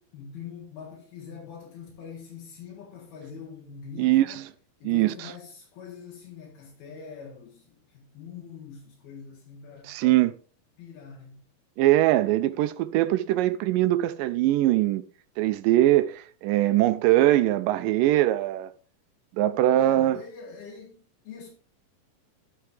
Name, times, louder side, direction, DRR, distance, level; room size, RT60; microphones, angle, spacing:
voice 1, 0.1-4.4 4.8-10.2 10.8-11.4 19.8-21.5, left 6 dB, 85° left, 3.7 m, -43 dB
voice 2, 4.0-4.4 4.8-5.3 9.8-10.3 11.8-15.0 15.4-18.7 19.4-20.2, right 15 dB, 80° right, 2.0 m, -22 dB
12.5 x 6.7 x 3.3 m
omnidirectional pair, 4.2 m